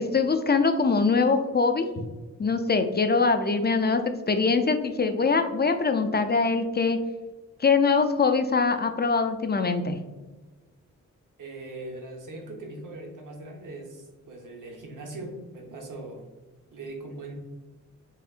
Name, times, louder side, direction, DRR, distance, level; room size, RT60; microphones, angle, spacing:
voice 1, 0.0-2.1 2.4-7.0 7.6-10.0, left 4 dB, 35° left, 8 dB, 0.4 m, -23 dB
voice 2, 11.4-16.3 16.7-17.3, right 2 dB, 85° right, 1 dB, 1.0 m, -40 dB
4.9 x 3.7 x 2.4 m, 1.3 s
wide cardioid pair, 85°, 31 cm